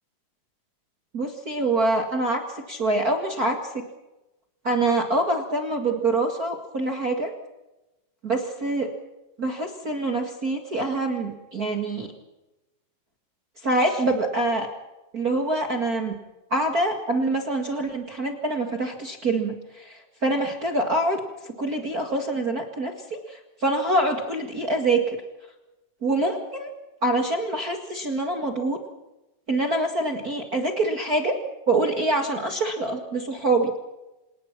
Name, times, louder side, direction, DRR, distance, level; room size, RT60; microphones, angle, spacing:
voice 1, 1.1-3.8 4.6-7.3 8.2-8.9 9.4-12.1 13.6-14.7 15.1-16.1 16.5-21.2 21.4-25.0 26.0-26.7 27.0-28.8 29.5-31.3 31.7-33.7, right 2 dB, 40° right, 3 dB, 1.3 m, -25 dB
27.0 x 19.5 x 5.9 m, 0.99 s
omnidirectional pair, 4.7 m